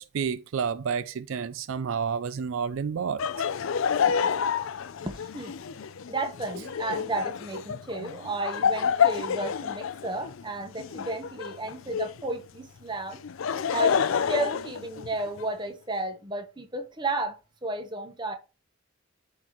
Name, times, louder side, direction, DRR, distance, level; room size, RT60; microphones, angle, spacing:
voice 1, 0.0-3.4, right 6 dB, 70° right, 0.4 m, -30 dB
Laughter, 3.2-12.3 13.1-15.5, left 7 dB, 70° left, 0.4 m, -28 dB
voice 2, 5.0-5.5 6.1-13.2 13.7-14.0 14.3-18.4, right 2 dB, 20° right, 0.9 m, -33 dB
11.5 x 3.9 x 3.0 m
head